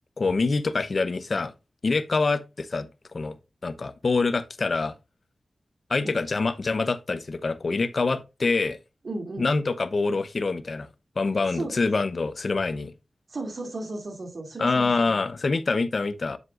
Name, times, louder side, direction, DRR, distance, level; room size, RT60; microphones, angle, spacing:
voice 1, 0.2-1.5 1.8-2.9 3.1-3.4 3.6-4.9 5.9-8.8 9.4-10.9 11.2-12.9 14.6-16.4, left 3 dB, 60° left, 0.7 m, -25 dB
voice 2, 9.0-9.5 11.5-11.7 13.3-15.2, right 2 dB, 65° right, 2.6 m, -35 dB
7.9 x 7.3 x 2.5 m
cardioid pair, 60°, 0 cm